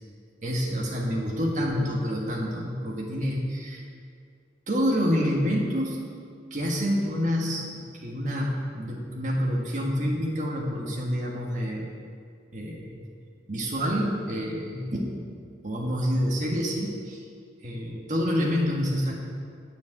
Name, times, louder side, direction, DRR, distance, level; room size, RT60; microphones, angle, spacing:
voice 1, 0.4-3.8 4.7-6.0 6.5-11.8 12.5-13.0 13.5-15.2 15.6-17.2 17.6-19.1, equal, 40° right, -3 dB, 1.6 m, -27 dB
9.3 x 6.9 x 8.0 m, 2.2 s
head